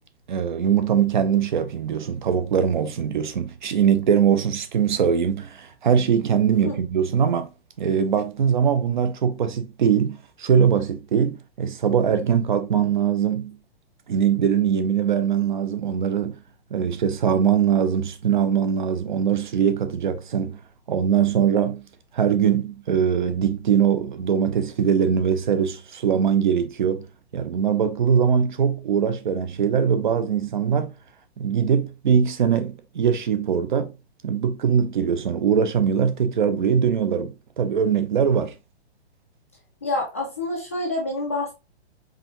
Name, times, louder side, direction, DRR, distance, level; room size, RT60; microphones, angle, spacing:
voice 1, 0.3-7.5 7.8-13.6 14.1-16.4 16.7-20.6 20.9-21.8 22.1-27.1 27.3-30.9 31.4-33.9 34.2-38.5, right 7 dB, 45° right, 0.6 m, -22 dB
voice 2, 39.8-41.5, left 2 dB, 15° left, 0.4 m, -27 dB
4.9 x 3.4 x 2.9 m
hypercardioid pair, 175°, 33 cm